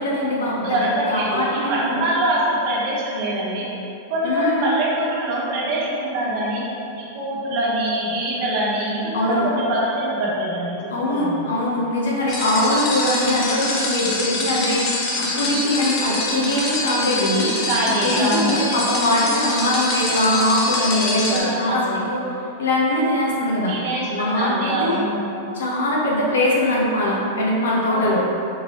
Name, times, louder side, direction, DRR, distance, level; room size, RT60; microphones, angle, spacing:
voice 1, 0.0-0.8 1.1-2.0 4.2-4.7 9.1-9.5 10.9-17.7 18.0-21.8 22.1-22.2 22.6-23.7 24.1-25.0 25.5-28.2, left 1 dB, 85° left, -4 dB, 1.0 m, -21 dB
voice 2, 0.6-3.6 4.1-6.6 6.9-11.5 17.7-18.6 20.9-22.1 23.7-25.2 27.9-28.2, right 1 dB, 55° right, -5 dB, 1.2 m, -24 dB
sound 1, 12.3-21.4, left 2 dB, 45° left, 0.9 m, -25 dB
5.1 x 3.0 x 3.1 m, 2.8 s
hypercardioid pair, 120°, 0 cm